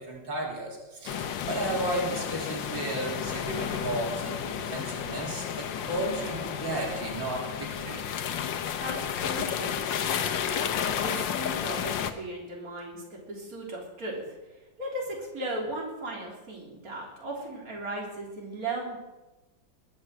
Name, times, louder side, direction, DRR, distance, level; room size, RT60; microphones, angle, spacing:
voice 1, 0.0-8.0, right 1 dB, 90° right, -2 dB, 4.0 m, -34 dB
sound 1, 1.1-12.1, left 8 dB, 80° left, 1.6 m, -32 dB
voice 2, 8.8-10.4 10.8-14.2 14.8-19.0, right 1 dB, 50° right, -2 dB, 3.9 m, -37 dB
21.5 x 7.2 x 7.7 m, 1.1 s
omnidirectional pair, 2.0 m